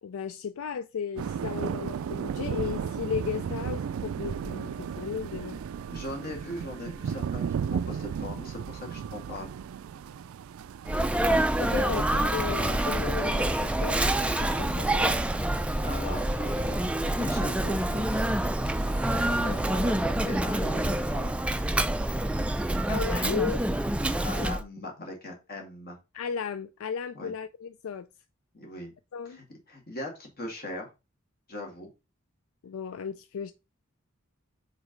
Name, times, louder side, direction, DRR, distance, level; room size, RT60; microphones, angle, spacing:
voice 1, 0.0-5.6 11.6-15.3 22.9-23.6 26.1-28.1 29.1-29.4 32.6-33.5, left 6 dB, 80° left, 0.4 m, -35 dB
sound 1, 1.2-20.0, right 7 dB, 80° right, 0.3 m, -37 dB
voice 2, 5.9-7.4 7.9-9.5 15.8-16.6 17.0-18.2 19.1-21.7 24.2-26.0 27.1-27.3 28.5-28.9 29.3-30.9 31.5-31.9, left 1 dB, 45° left, 2.2 m, -39 dB
Sneeze, 10.9-24.6, right 1 dB, 5° right, 0.4 m, -27 dB
5.0 x 4.1 x 5.2 m
head